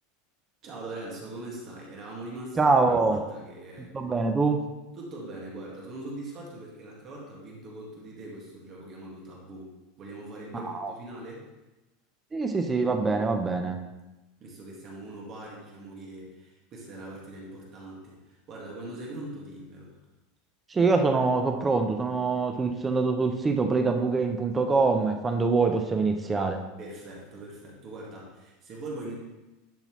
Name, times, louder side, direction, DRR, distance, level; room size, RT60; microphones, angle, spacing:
voice 1, 0.6-2.8 3.1-4.0 4.9-9.7 10.0-11.5 14.4-19.9 26.8-29.1, right 2 dB, 30° right, -3 dB, 1.7 m, -41 dB
voice 2, 2.6-3.2 3.9-4.6 10.6-10.9 12.3-13.8 20.7-26.6, right 4 dB, 10° right, 5 dB, 0.4 m, -24 dB
11.0 x 5.7 x 3.0 m, 1.1 s
supercardioid pair, 170°, 0 cm